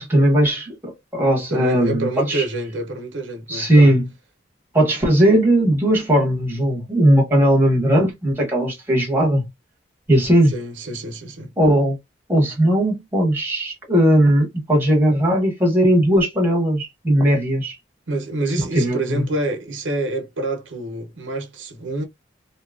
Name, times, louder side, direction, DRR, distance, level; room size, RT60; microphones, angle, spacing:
voice 1, 0.0-2.4 3.5-4.0 4.7-9.4 10.1-10.5 11.6-12.0 12.3-17.8 18.7-19.2, right 1 dB, 10° right, 1.1 m, -18 dB
voice 2, 1.5-4.0 10.5-11.5 18.1-22.0, right 2 dB, 85° right, 0.8 m, -27 dB
2.8 x 2.3 x 2.3 m
head